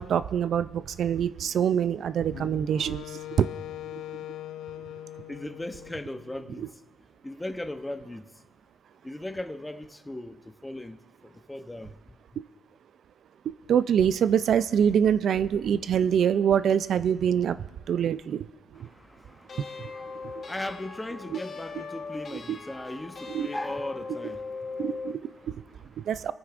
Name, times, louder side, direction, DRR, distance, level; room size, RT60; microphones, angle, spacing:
voice 1, 0.0-3.0 3.4-3.5 13.7-17.6 17.9-18.5 18.8-18.9 23.3-23.5 24.8-25.2 25.5-25.6 26.1-26.3, right 8 dB, 65° right, 0.3 m, -24 dB
Wind instrument woodwind instrument, 2.3-6.5, left 13 dB, 85° left, 0.3 m, -41 dB
voice 2, 5.3-6.8 7.2-8.4 9.0-12.0 18.7-26.1, left 1 dB, 10° left, 0.7 m, -38 dB
sound 1, 19.5-25.2, left 4 dB, 50° left, 1.4 m, -39 dB
28.0 x 9.5 x 2.5 m
cardioid pair, 80°, 0 cm